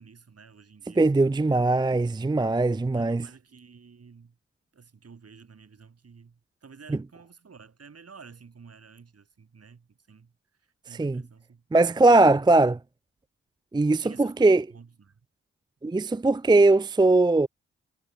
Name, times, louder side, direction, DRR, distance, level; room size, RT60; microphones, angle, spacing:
voice 1, 0.0-1.3 2.9-4.4 4.7-10.3 10.9-11.6 12.1-12.3 14.0-15.2, right 5 dB, 55° right, 6.2 m, -51 dB
voice 2, 1.0-3.2 11.0-11.2 11.7-12.8 13.7-14.7 15.8-17.5, right 2 dB, 15° right, 0.5 m, -20 dB
supercardioid pair, 50°, 29 cm